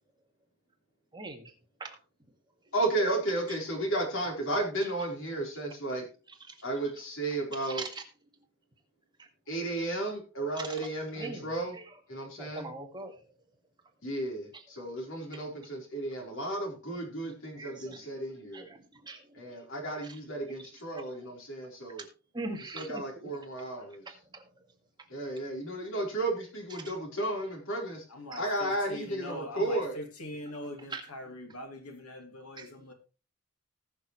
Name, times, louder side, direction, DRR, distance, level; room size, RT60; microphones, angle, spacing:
voice 1, 1.1-1.5 1.8-2.0 6.5-6.6 7.6-8.0 9.2-9.3 10.6-10.7 11.2-11.5 11.8-11.9 12.4-13.2 17.6-18.0 18.5-19.4 22.3-23.3 24.1-24.5 28.3-28.4 30.4-30.5 30.9-31.1 32.6-32.7, right 2 dB, 20° right, 1.9 m, -41 dB
voice 2, 2.7-6.1 6.6-7.8 9.5-11.8 12.1-12.7 14.0-18.6 19.3-22.0 22.7-24.0 25.1-28.0 28.4-30.0, right 2 dB, 65° left, 4.2 m, -33 dB
voice 3, 28.1-32.9, left 1 dB, 85° left, 2.6 m, -42 dB
19.0 x 6.6 x 3.2 m
head